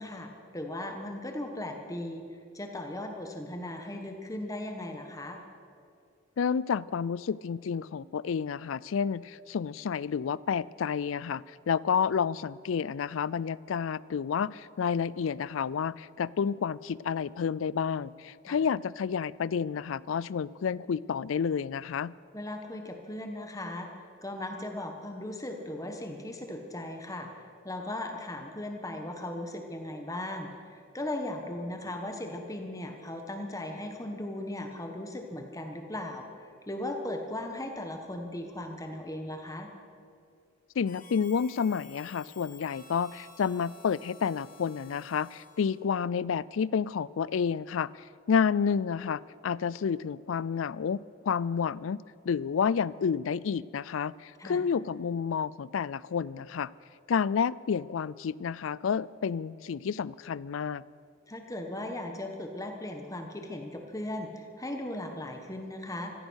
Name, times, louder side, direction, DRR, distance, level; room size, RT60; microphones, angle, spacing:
voice 1, 0.0-2.2 2.5-5.4 18.5-18.6 22.3-23.9 24.2-36.3 36.7-39.7 54.4-54.7 61.3-66.1, left 1 dB, 15° left, 4 dB, 1.3 m, -37 dB
voice 2, 6.4-22.1 40.8-47.9 48.3-56.7 57.1-60.8, left 6 dB, 75° left, 21 dB, 0.4 m, -30 dB
Harmonica, 40.8-45.9, left 5 dB, 40° left, 1.9 m, -53 dB
15.5 x 15.0 x 6.4 m, 2.3 s
head